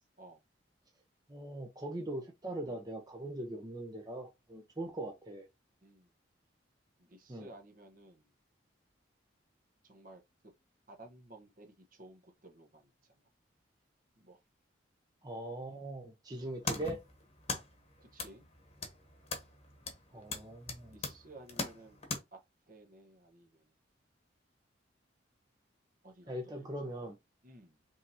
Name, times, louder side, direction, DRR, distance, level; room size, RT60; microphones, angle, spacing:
voice 1, 1.3-5.5 7.3-7.5 15.2-17.0 20.1-21.0 26.3-27.2, right 1 dB, 20° right, 0.8 m, -41 dB
voice 2, 5.8-6.1 7.0-8.3 9.8-10.2 10.9-13.3 14.2-14.4 18.0-18.5 20.1-20.3 20.9-22.0 22.3-22.4 22.7-23.7 26.0-26.5 26.8-27.1 27.4-27.8, right 2 dB, 45° right, 1.2 m, -55 dB
sound 1, 16.3-22.2, left 3 dB, 35° left, 1.2 m, -41 dB
5.2 x 3.4 x 2.8 m
head